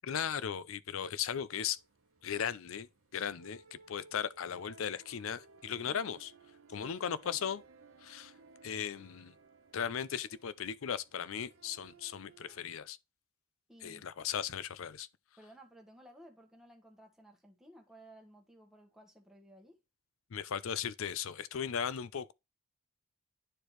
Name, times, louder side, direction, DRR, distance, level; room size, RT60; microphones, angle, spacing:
voice 1, 0.0-1.8 2.2-6.3 6.7-7.6 8.0-8.3 8.6-9.3 9.7-13.0 13.8-15.1 20.3-22.3, left 8 dB, 75° left, 0.5 m, -37 dB
sound 1, 1.7-12.6, right 4 dB, 75° right, 1.0 m, -60 dB
voice 2, 13.7-14.1 15.4-19.8, right 1 dB, ahead, 1.1 m, -57 dB
9.8 x 4.4 x 3.1 m
head